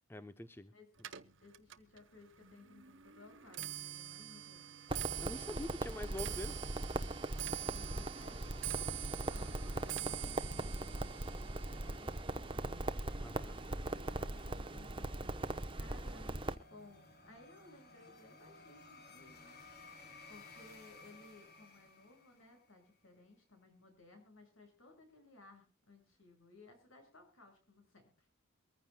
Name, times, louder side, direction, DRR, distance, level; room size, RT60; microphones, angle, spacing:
voice 1, 0.1-0.7 5.2-6.6 13.2-13.6, left 1 dB, 10° left, 10 dB, 0.7 m, -45 dB
Clock, 1.0-14.3 14.6-15.1 15.9-16.0 16.3-16.7 17.0-17.1, right 13 dB, 65° right, 0.9 m, -46 dB
voice 2, 1.4-4.8 5.7-6.0 7.5-19.6 20.3-28.3, left 2 dB, 75° left, 5 dB, 6.7 m, -60 dB
Crackle, 4.9-16.6, right 2 dB, 25° right, 0.9 m, -40 dB
sound 1, 8.2-22.8, left 3 dB, 45° left, 3.8 m, -60 dB
24.0 x 15.0 x 2.3 m, 0.31 s
head